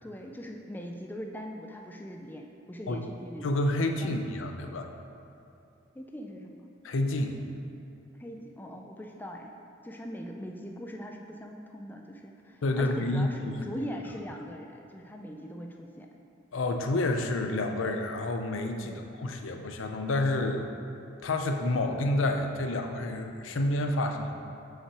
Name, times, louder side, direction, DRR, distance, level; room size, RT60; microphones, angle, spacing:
voice 1, 0.0-4.2 5.9-6.7 8.2-9.5 9.8-16.1 18.8-19.1, equal, 10° left, 2 dB, 0.4 m, -41 dB
voice 2, 3.4-4.9 6.8-7.4 12.6-13.7 16.5-20.7 21.2-24.3, left 2 dB, 75° left, 5 dB, 0.5 m, -29 dB
5.8 x 5.7 x 4.7 m, 2.6 s
head